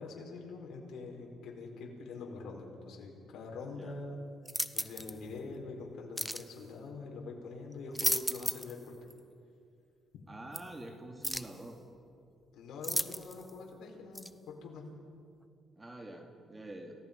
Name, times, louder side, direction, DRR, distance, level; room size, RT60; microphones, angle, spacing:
voice 1, 0.0-4.2 4.7-8.9 10.9-11.0 12.5-14.9, left 3 dB, 75° left, 0 dB, 4.7 m, -44 dB
sound 1, 4.5-5.2 6.2-6.5 7.7-8.8 9.1-9.2 10.5-10.6 11.2-11.6 12.8-13.5 14.2-14.3, equal, ahead, 0.8 m, -34 dB
voice 2, 10.3-11.8 15.8-16.9, right 1 dB, 20° right, 2 dB, 2.6 m, -46 dB
29.5 x 18.0 x 5.4 m, 2.3 s
cardioid pair, 90°, 0 cm